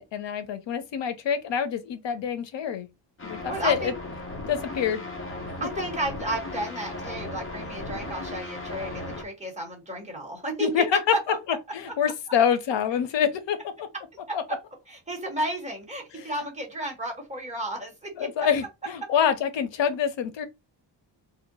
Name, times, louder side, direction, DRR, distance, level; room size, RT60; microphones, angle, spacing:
voice 1, 0.0-2.9 3.2-3.9 4.5-5.0 10.6-11.1 11.7-13.9 14.3-14.4 16.2-16.3 18.2-20.4, left 8 dB, 85° left, 0.7 m, -26 dB
sound 1, 3.2-9.2, left 2 dB, 30° left, 0.8 m, -36 dB
voice 2, 3.5-3.9 5.6-10.8 11.1-11.4 14.3-14.4 14.9-18.3, right 1 dB, 15° right, 1.2 m, -32 dB
2.8 x 2.2 x 3.9 m
wide cardioid pair, 165°, 43 cm